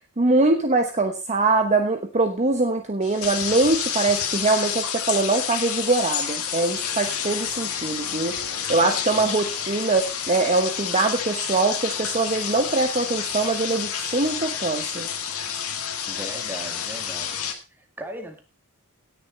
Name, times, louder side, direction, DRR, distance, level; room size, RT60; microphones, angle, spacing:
voice 1, 0.2-8.4 8.7-15.1, right 3 dB, 30° right, 5 dB, 1.0 m, -23 dB
sound 1, 3.0-17.5, left 8 dB, 70° left, 1.9 m, -29 dB
voice 2, 16.1-17.4 17.7-18.4, right 1 dB, 10° right, 4 dB, 2.2 m, -37 dB
17.5 x 6.8 x 4.2 m, 0.31 s
head